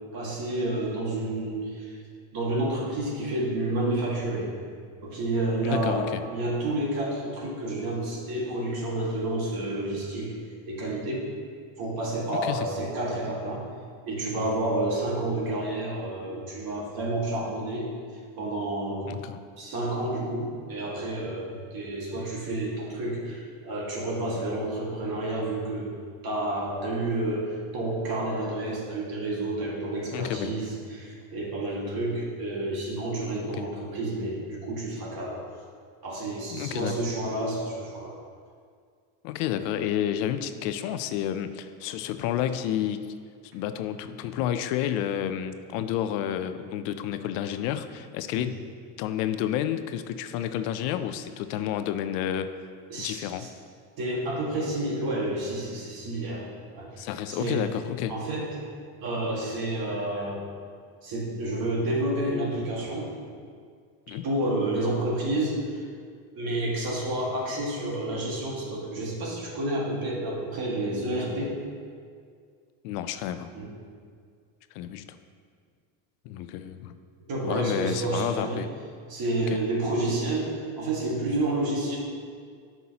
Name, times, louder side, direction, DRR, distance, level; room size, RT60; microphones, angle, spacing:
voice 1, 0.1-2.0 2.3-4.5 5.0-10.4 10.7-11.3 11.8-13.6 14.1-17.9 18.4-19.1 19.6-25.9 26.2-35.4 36.0-38.2 48.3-48.5 52.9-53.5 54.0-56.5 56.7-57.6 58.1-58.6 59.0-60.4 61.0-63.1 64.2-65.8 66.4-71.5 73.6-73.7 77.3-78.6 79.1-82.0, right 1 dB, 45° right, -3 dB, 2.0 m, -30 dB
voice 2, 5.6-6.2 12.3-12.7 19.0-19.4 30.1-30.5 33.5-33.7 36.5-37.0 39.2-43.1 43.5-48.7 49.0-52.5 53.0-53.5 57.0-58.2 64.1-64.2 72.8-73.5 74.7-75.2 76.2-76.9 77.4-78.7 79.5-79.6, left 10 dB, 75° left, 10 dB, 0.6 m, -30 dB
9.4 x 5.8 x 2.9 m, 2.1 s
supercardioid pair, 110°, 50 cm